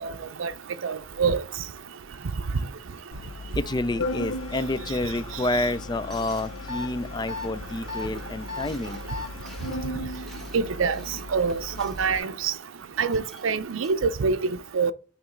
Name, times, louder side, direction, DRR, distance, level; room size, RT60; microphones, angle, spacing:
voice 1, 0.8-1.4 10.5-12.5 13.0-14.4 14.7-14.9, right 5 dB, 80° right, 0.5 m, -25 dB
Organ, 3.1-12.2, left 2 dB, 90° left, 0.7 m, -37 dB
voice 2, 3.5-9.0, left 2 dB, 20° left, 0.3 m, -29 dB
sound 1, 4.4-4.7 5.2-5.4 6.0-6.8 7.3-7.4 7.6-8.2 8.5-12.1 13.1-14.0, equal, ahead, 1.6 m, -51 dB
sound 2, 6.7-6.9 7.3-7.5 7.9-8.1 8.5-8.7 9.1-9.3, left 4 dB, 20° right, 1.1 m, -34 dB
8.9 x 3.1 x 3.8 m
head